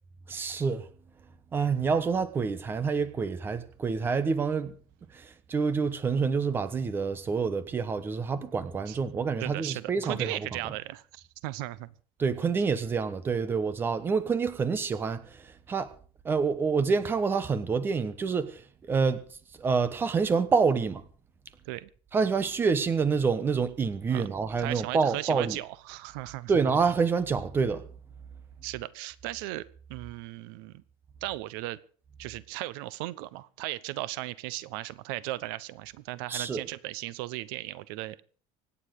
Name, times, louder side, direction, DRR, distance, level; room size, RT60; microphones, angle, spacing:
voice 1, 0.3-0.9 1.5-4.7 5.1-10.5 12.2-15.9 16.2-18.6 18.9-19.2 19.6-21.0 22.1-25.6 26.5-27.8 36.3-36.6, right 5 dB, 20° right, 1.2 m, -27 dB
voice 2, 9.4-11.9 21.7-21.9 24.1-24.3 24.6-26.5 28.6-29.6 29.9-30.8 31.2-31.8 32.2-38.2, right 17 dB, 85° right, 1.0 m, -36 dB
25.0 x 9.8 x 4.9 m
cardioid pair, 170°, 12 cm